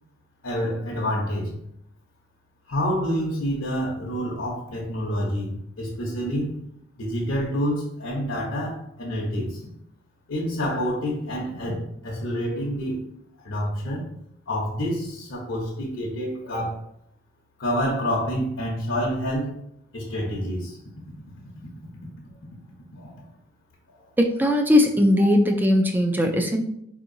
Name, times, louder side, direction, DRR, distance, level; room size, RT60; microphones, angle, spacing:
voice 1, 0.4-1.5 2.7-6.6 7.0-9.6 10.3-13.0 13.4-14.1 14.5-16.8 17.6-19.6 19.9-20.8 22.9-23.2 23.9-24.0, equal, 70° left, -4 dB, 0.8 m, -28 dB
voice 2, 24.2-26.6, left 1 dB, 10° right, 4 dB, 0.4 m, -19 dB
4.5 x 2.8 x 2.6 m, 0.73 s
head